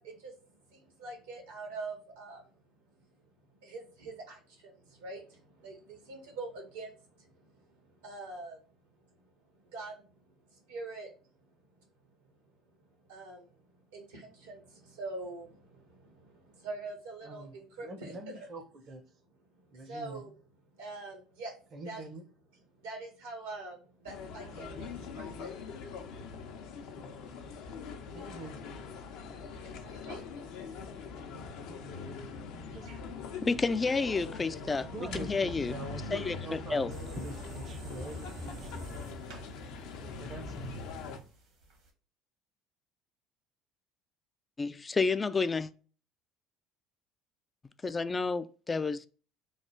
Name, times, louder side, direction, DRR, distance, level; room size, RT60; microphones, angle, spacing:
voice 1, 0.0-2.6 3.6-8.6 9.0-9.1 9.6-11.1 11.7-11.8 12.2-12.3 13.1-18.5 19.7-20.3 20.7-21.5 21.8-22.1 22.7-27.1 27.5-27.6 29.7-32.1 32.6-33.5 34.5-34.9 36.9-37.0, right 3 dB, 85° right, 1.5 m, -45 dB
voice 2, 17.2-19.0 19.7-20.2 21.7-22.2 28.1-28.6 31.3-32.2 32.7-33.1 33.4-33.5 34.6-36.9 37.1-38.8 40.2-40.8, right 2 dB, 45° right, 0.7 m, -45 dB
sound 1, 24.1-41.2, left 4 dB, 70° left, 0.6 m, -43 dB
voice 3, 33.4-35.7 36.1-36.3 36.7-36.9 44.6-45.7 47.8-49.1, left 4 dB, 25° left, 0.3 m, -30 dB
sound 2, 36.9-41.9, equal, 70° right, 1.3 m, -46 dB
3.2 x 2.4 x 4.4 m
hypercardioid pair, 70°, 0 cm